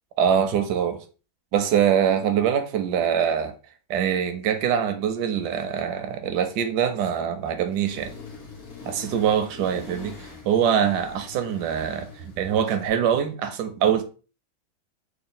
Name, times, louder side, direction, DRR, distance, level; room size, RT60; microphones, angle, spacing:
voice 1, 0.2-1.0 1.5-3.5 3.9-8.1 8.9-10.2 10.4-14.0, right 8 dB, 75° right, 0.9 m, -23 dB
Accelerating revving vroom, 7.7-12.9, left 4 dB, 65° left, 0.6 m, -43 dB
3.4 x 2.2 x 3.6 m
omnidirectional pair, 2.2 m